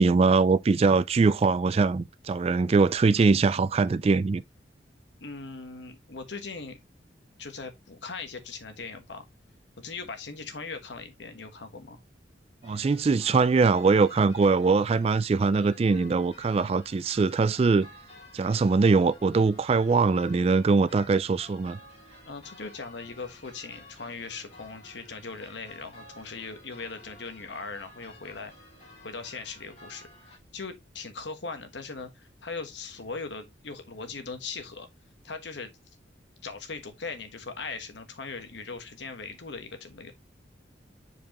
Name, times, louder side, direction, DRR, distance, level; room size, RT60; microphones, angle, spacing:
voice 1, 0.0-4.4 12.6-17.9 18.3-21.8, right 4 dB, 35° right, 0.3 m, -22 dB
voice 2, 5.2-6.8 7.4-9.3 9.8-12.0 22.3-28.5 29.0-34.9 35.2-35.7 36.4-40.1, left 4 dB, 65° left, 1.3 m, -39 dB
sound 1, 12.6-30.4, left 1 dB, 35° left, 2.4 m, -52 dB
7.4 x 4.7 x 2.9 m
head